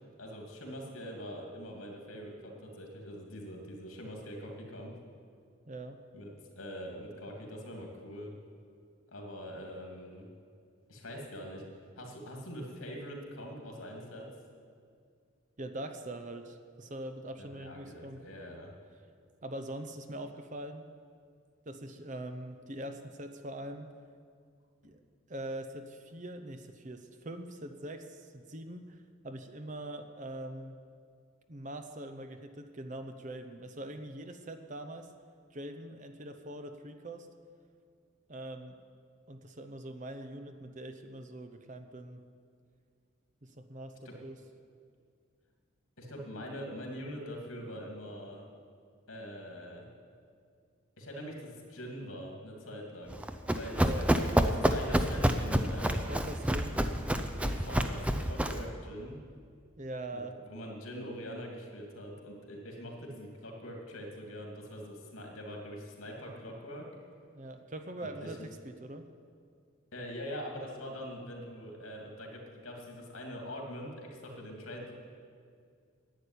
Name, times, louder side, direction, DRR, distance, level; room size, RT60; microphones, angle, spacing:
voice 1, 0.0-4.9 6.1-8.3 9.1-10.3 10.9-11.6 12.0-14.3 17.4-18.7 44.0-44.1 46.0-48.4 49.1-49.9 51.0-53.2 53.5-56.2 57.4-59.2 60.1-66.9 68.0-68.3 69.9-74.9, equal, 75° left, 1 dB, 2.8 m, -43 dB
voice 2, 5.7-6.0 15.6-18.2 19.4-20.8 21.7-23.9 24.8-25.0 25.3-29.0 29.2-30.7 31.5-35.1 35.5-37.3 38.3-38.7 39.3-42.2 43.6-44.4 53.8-54.4 56.1-56.8 59.8-60.4 67.3-69.1, right 1 dB, 35° right, 7 dB, 0.8 m, -43 dB
Run, 53.1-58.7, equal, 5° right, 0.5 m, -28 dB
11.5 x 8.5 x 9.9 m, 2.2 s
head